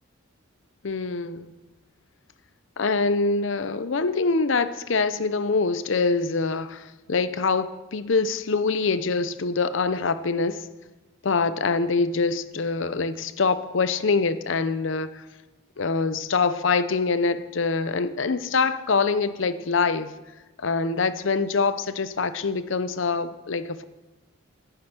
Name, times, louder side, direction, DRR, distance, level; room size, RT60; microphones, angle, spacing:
voice 1, 0.8-1.5 2.8-10.7 11.2-15.2 15.8-20.1 20.6-23.8, left 4 dB, 65° left, 13 dB, 0.6 m, -24 dB
10.5 x 8.9 x 6.7 m, 1.2 s
head